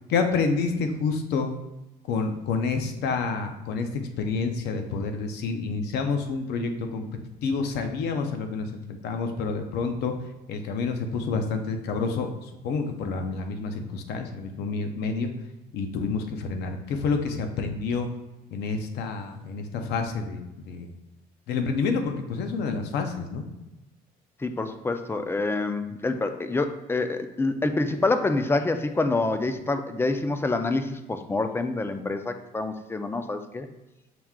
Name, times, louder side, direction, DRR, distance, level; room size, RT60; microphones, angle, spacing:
voice 1, 0.1-1.5 2.1-7.1 7.4-10.1 10.5-15.3 15.7-18.1 18.5-20.9 21.5-23.4, left 4 dB, 80° left, 5 dB, 0.6 m, -28 dB
voice 2, 24.4-33.7, left 3 dB, 15° left, 8 dB, 0.3 m, -27 dB
5.9 x 2.3 x 3.6 m, 0.98 s
cardioid pair, 110°, 17 cm